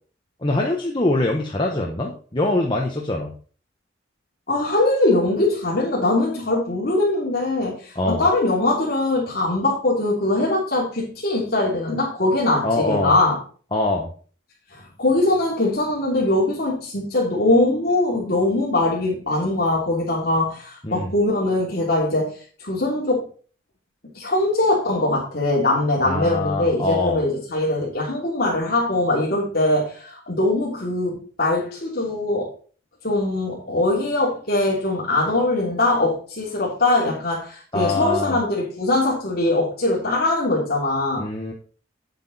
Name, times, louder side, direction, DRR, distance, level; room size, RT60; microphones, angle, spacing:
voice 1, 0.4-3.3 8.0-8.2 12.6-13.1 13.7-14.1 20.8-21.1 26.0-27.2 37.7-38.4 41.2-41.5, left 2 dB, 25° left, 0 dB, 1.1 m, -23 dB
voice 2, 4.5-13.4 14.7-23.3 24.1-32.5 33.0-41.2, left 2 dB, 50° left, -5 dB, 3.2 m, -22 dB
9.0 x 8.2 x 4.2 m, 0.41 s
head